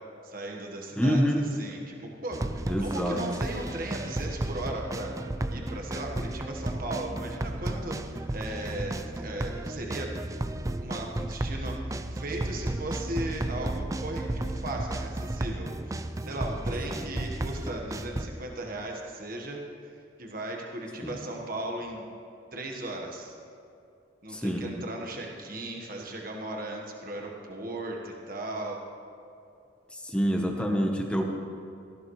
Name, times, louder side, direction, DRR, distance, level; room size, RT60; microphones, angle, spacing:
voice 1, 0.2-5.2 5.5-10.2 10.8-19.6 20.2-22.1 22.5-23.4 24.2-28.8, right 1 dB, 45° right, 0 dB, 1.4 m, -37 dB
voice 2, 1.0-1.4 2.7-3.2 21.0-21.2 24.3-24.6 29.9-31.3, equal, 5° left, 1 dB, 1.0 m, -26 dB
sound 1, 2.3-18.3, right 1 dB, 15° right, 0.4 m, -33 dB
18.5 x 14.0 x 3.2 m, 2.6 s
head